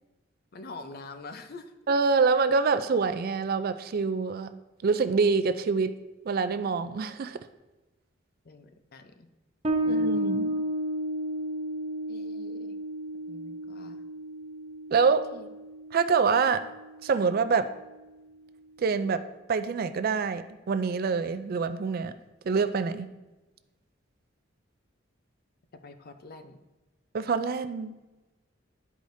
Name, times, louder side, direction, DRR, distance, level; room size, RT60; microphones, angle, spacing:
voice 1, 0.5-1.7 8.4-9.3 9.8-10.3 12.1-12.8 13.3-14.0 15.3-15.5 25.8-26.6, left 3 dB, 50° left, 8 dB, 0.6 m, -45 dB
voice 2, 1.9-4.6 4.8-5.9 6.3-7.4 9.8-10.6 14.9-15.3 15.9-16.7 17.0-17.7 18.8-22.1 22.5-23.1 27.1-28.0, right 5 dB, 50° right, 11 dB, 0.4 m, -26 dB
Bass guitar, 9.6-16.8, right 1 dB, 30° right, 0.8 m, -32 dB
12.0 x 4.8 x 2.6 m, 1.1 s
head